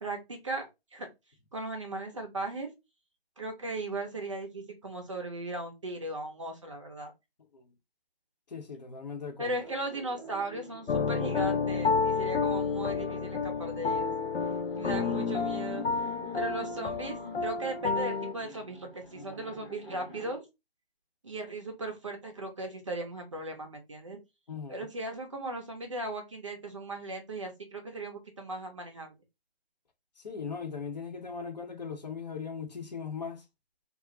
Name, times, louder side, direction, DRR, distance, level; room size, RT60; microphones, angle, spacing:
voice 1, 0.0-1.1 1.5-2.7 3.4-7.1 9.4-14.1 14.8-15.8 16.3-20.5 21.2-24.2 24.7-29.2, right 2 dB, 30° right, 0.6 m, -37 dB
voice 2, 8.5-9.6 24.5-24.9 30.2-33.4, left 6 dB, 40° left, 0.7 m, -39 dB
Laughter, 9.4-20.3, left 1 dB, 5° left, 0.7 m, -48 dB
sound 1, 10.9-18.3, left 5 dB, 80° left, 0.5 m, -30 dB
2.4 x 2.1 x 3.7 m
figure-of-eight pair, 150°, 31 cm